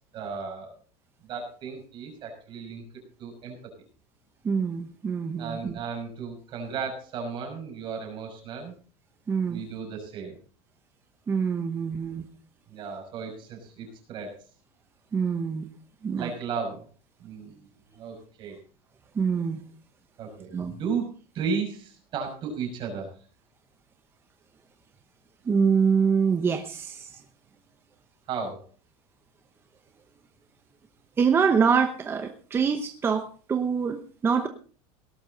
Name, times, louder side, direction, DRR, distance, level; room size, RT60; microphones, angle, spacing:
voice 1, 0.1-0.7 1.3-2.8 3.2-3.6 5.4-8.7 9.5-10.4 11.8-12.0 12.7-14.4 16.2-16.8 17.2-17.6 17.9-18.6 20.2-21.1 21.3-23.1 28.3-28.6, right 5 dB, 35° right, 3 dB, 5.8 m, -34 dB
voice 2, 4.4-5.7 9.3-9.6 11.3-12.3 15.1-15.7 16.0-16.3 19.1-19.6 20.5-20.7 25.5-27.2 31.2-34.5, right 6 dB, 15° right, 6 dB, 0.9 m, -25 dB
18.0 x 12.0 x 4.0 m, 0.39 s
supercardioid pair, 165°, 15 cm